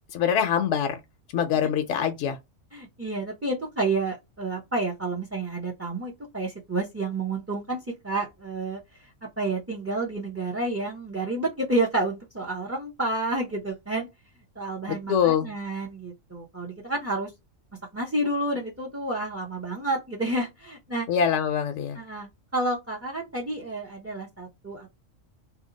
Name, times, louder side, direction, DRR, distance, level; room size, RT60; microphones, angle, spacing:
voice 1, 0.1-1.0 1.3-2.4 15.1-15.5 21.1-22.0, left 8 dB, 70° left, 0.9 m, -24 dB
voice 2, 2.7-9.1 9.4-14.1 14.6-17.3 17.9-21.1 21.9-24.9, right 2 dB, 15° right, 0.5 m, -30 dB
2.8 x 2.3 x 3.8 m
omnidirectional pair, 1.3 m